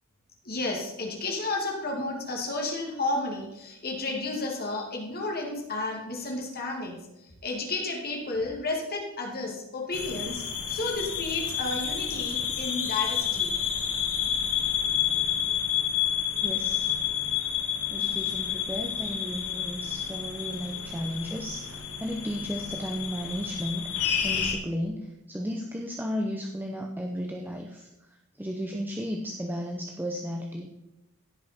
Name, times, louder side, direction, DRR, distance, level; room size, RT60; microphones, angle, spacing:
voice 1, 0.4-13.5, left 2 dB, 45° left, 0 dB, 2.2 m, -32 dB
sound 1, 9.9-24.5, left 8 dB, 85° left, 1.8 m, -30 dB
voice 2, 16.4-16.9 17.9-23.9 24.2-27.9 28.3-30.7, equal, 10° right, 1 dB, 0.7 m, -34 dB
16.0 x 5.5 x 4.4 m, 0.93 s
head